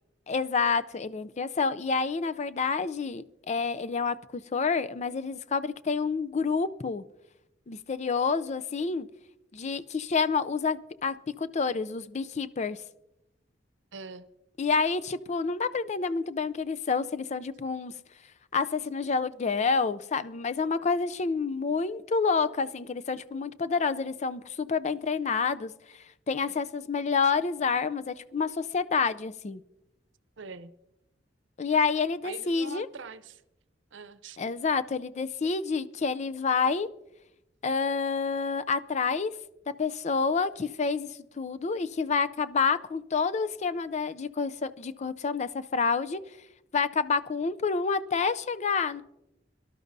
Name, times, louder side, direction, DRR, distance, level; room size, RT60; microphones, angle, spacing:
voice 1, 0.3-7.0 7.7-9.1 9.5-12.8 14.6-17.9 18.5-29.6 31.6-32.9 34.4-36.9 37.6-39.3 39.8-41.1 41.4-46.2 46.7-49.0, left 5 dB, 40° left, 15 dB, 0.4 m, -28 dB
voice 2, 13.9-14.3 30.4-30.7 32.2-33.4 33.9-34.4, right 4 dB, 85° right, 12 dB, 0.7 m, -43 dB
23.5 x 12.0 x 2.7 m, 0.88 s
head